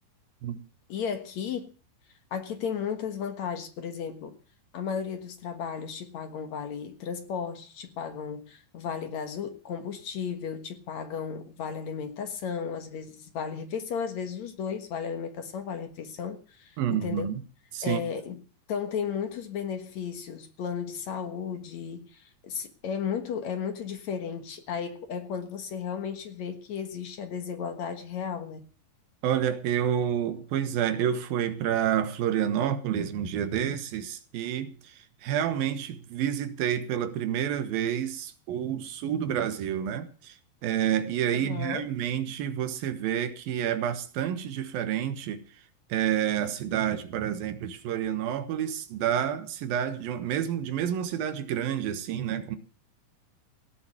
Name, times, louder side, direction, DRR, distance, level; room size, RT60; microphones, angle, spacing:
voice 1, 0.9-1.7 2.3-4.4 4.7-17.3 17.8-18.4 18.7-28.6 41.3-41.9, left 7 dB, 60° left, 2.5 m, -34 dB
voice 2, 16.8-17.4 17.7-18.0 29.2-45.4 45.9-52.6, right 9 dB, 85° right, 3.1 m, -29 dB
17.5 x 7.2 x 9.3 m
omnidirectional pair, 4.1 m